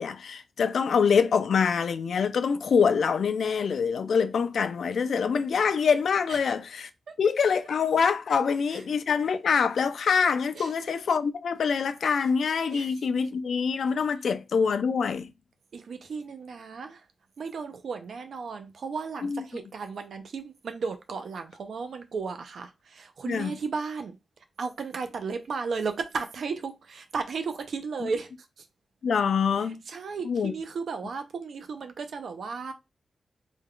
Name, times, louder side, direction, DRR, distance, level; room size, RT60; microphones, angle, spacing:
voice 1, 0.0-6.9 7.2-15.3 19.2-19.4 23.3-23.5 28.0-28.1 29.0-29.8 30.2-30.5, left 6 dB, 75° left, 0.3 m, -25 dB
voice 2, 12.7-13.0 15.7-17.1 17.4-24.2 24.6-28.3 28.6-28.7 29.6-32.7, right 5 dB, 75° right, 0.5 m, -34 dB
3.5 x 2.2 x 3.5 m
wide cardioid pair, 155°, 0 cm